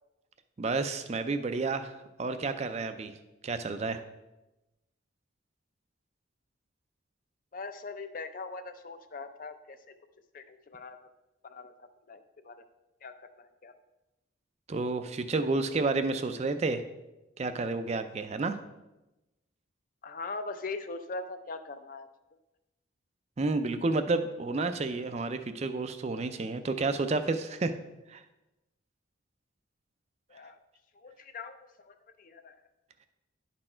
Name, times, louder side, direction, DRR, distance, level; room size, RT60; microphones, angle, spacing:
voice 1, 0.6-3.1 3.4-4.0 14.7-16.8 17.4-18.6 23.4-27.8 28.1-28.2, right 3 dB, 30° right, 9 dB, 0.4 m, -30 dB
voice 2, 7.5-9.8 10.3-11.0 11.4-12.5 13.0-13.7 20.0-22.1 30.3-30.6 30.9-32.6, left 3 dB, 40° left, 9 dB, 0.5 m, -41 dB
10.5 x 4.3 x 4.4 m, 1.0 s
head